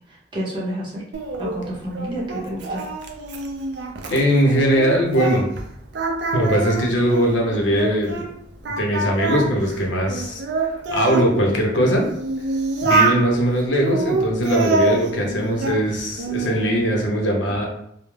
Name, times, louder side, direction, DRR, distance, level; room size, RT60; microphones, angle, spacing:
voice 1, 0.1-1.0 1.4-2.8, right 1 dB, 25° right, -5 dB, 0.6 m, -29 dB
Singing, 1.1-5.6 5.9-8.3 8.7-11.3 11.9-13.2 13.8-15.8 16.2-16.8, right 3 dB, 65° right, 0.4 m, -25 dB
voice 2, 4.1-5.5 6.3-8.2 8.8-10.4 10.7-12.1 12.8-17.7, equal, 80° left, -1 dB, 0.6 m, -20 dB
2.3 x 2.0 x 3.1 m, 0.71 s
head